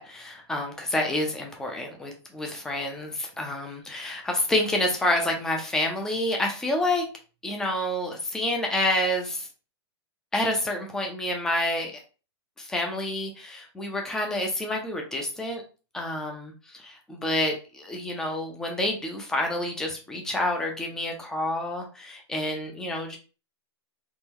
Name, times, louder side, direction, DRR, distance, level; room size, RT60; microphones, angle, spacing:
voice 1, 0.0-7.0 7.4-9.5 10.3-12.0 12.6-15.6 15.9-23.2, left 1 dB, 5° left, 2 dB, 0.3 m, -28 dB
3.7 x 3.0 x 2.9 m, 0.34 s
supercardioid pair, 175°, 14 cm